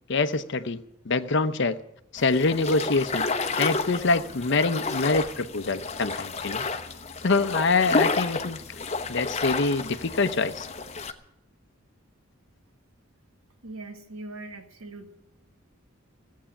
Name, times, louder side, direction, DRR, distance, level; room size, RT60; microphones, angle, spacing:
voice 1, 0.1-1.8 2.1-3.3 3.6-6.6 7.2-8.6 9.1-10.7, left 3 dB, 60° left, 0.7 m, -25 dB
sound 1, 2.2-11.1, left 3 dB, 30° left, 0.9 m, -30 dB
voice 2, 13.6-15.2, right 2 dB, 85° right, 1.8 m, -41 dB
15.5 x 8.4 x 9.9 m
head